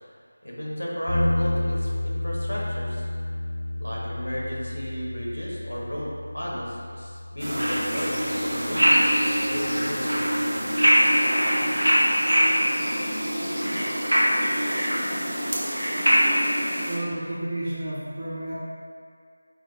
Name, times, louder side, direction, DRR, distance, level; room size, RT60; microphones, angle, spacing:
voice 1, 0.4-3.1 3.8-10.8, equal, 75° left, -4 dB, 1.0 m, -34 dB
sound 1, 1.1-11.1, left 1 dB, 35° left, 0.9 m, -32 dB
sound 2, 7.4-17.0, equal, 70° right, 0.8 m, -23 dB
voice 2, 16.8-18.5, right 1 dB, 25° right, -11 dB, 0.9 m, -31 dB
4.9 x 2.7 x 2.7 m, 2.1 s
figure-of-eight pair, 165°, 0 cm